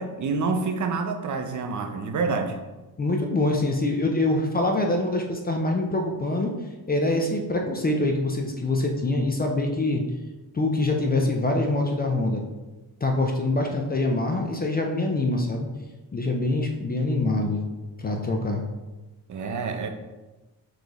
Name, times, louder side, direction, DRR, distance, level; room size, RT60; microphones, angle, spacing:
voice 1, 0.0-2.6 19.3-19.9, right 4 dB, 50° right, 5 dB, 0.6 m, -27 dB
voice 2, 3.0-6.5 6.9-10.0 10.5-12.4 13.0-15.7 16.1-17.6 18.0-18.6, left 2 dB, 25° left, 2 dB, 0.4 m, -24 dB
4.2 x 3.2 x 2.9 m, 1.1 s
cardioid pair, 120°, 40 cm